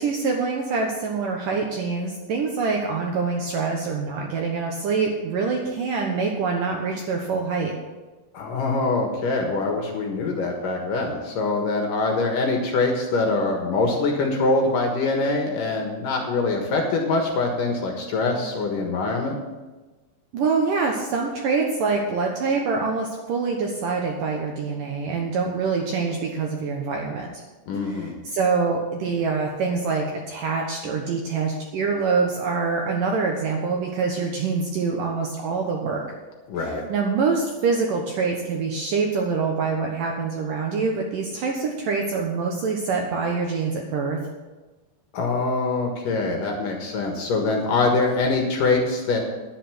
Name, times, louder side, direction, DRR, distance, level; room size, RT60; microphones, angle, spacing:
voice 1, 0.0-7.7 20.3-27.3 27.8-36.1 36.6-44.2, right 4 dB, 70° right, 1 dB, 2.2 m, -25 dB
voice 2, 8.3-19.3 27.7-28.2 36.5-36.8 45.1-49.2, left 3 dB, 60° left, 2 dB, 2.6 m, -24 dB
11.0 x 10.0 x 6.1 m, 1.2 s
omnidirectional pair, 5.1 m